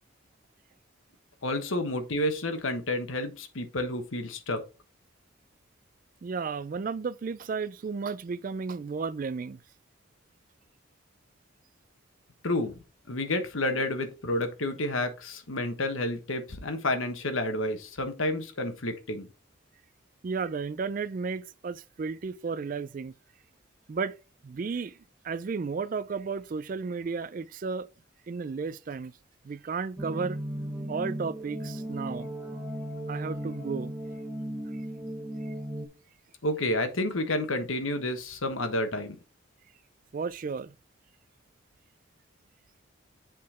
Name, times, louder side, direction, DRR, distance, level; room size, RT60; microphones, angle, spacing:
voice 1, 1.4-4.6 12.4-12.8 13.1-19.3 36.4-39.2, left 1 dB, 80° left, 1.2 m, -30 dB
voice 2, 6.2-9.6 20.2-23.1 23.9-24.2 24.4-25.0 25.2-27.9 28.3-29.1 29.4-30.4 30.9-32.3 33.1-33.9 35.5-35.6 40.1-40.7, right 5 dB, 40° right, 0.3 m, -33 dB
sound 1, 30.0-35.9, right 1 dB, 5° right, 1.0 m, -36 dB
7.5 x 3.8 x 4.2 m
head